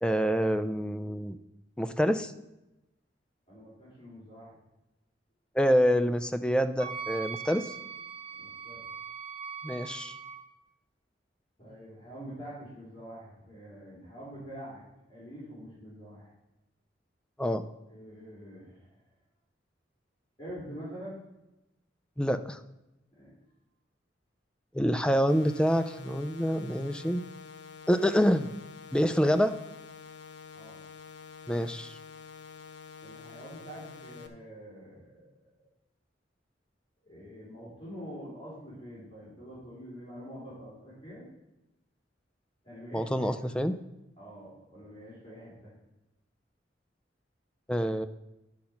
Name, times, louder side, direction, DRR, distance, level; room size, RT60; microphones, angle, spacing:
voice 1, 0.0-1.4 1.8-2.3 5.6-7.7 9.6-10.2 17.4-17.6 22.2-22.6 24.7-27.2 27.9-28.5 28.9-29.6 31.5-32.0 42.9-43.8 47.7-48.1, equal, 5° left, 9 dB, 0.4 m, -26 dB
voice 2, 3.5-4.6 8.3-8.8 11.6-14.8 15.1-16.3 17.9-19.0 20.4-21.2 23.2-23.4 30.5-30.8 33.0-35.3 37.0-41.3 42.6-43.7 44.2-45.7, equal, 30° left, -9 dB, 3.9 m, -46 dB
Wind instrument woodwind instrument, 6.8-10.4, right 6 dB, 35° right, 1.2 m, -40 dB
sound 1, 25.3-34.3, left 6 dB, 75° left, 0.9 m, -48 dB
10.5 x 5.3 x 5.9 m, 0.94 s
head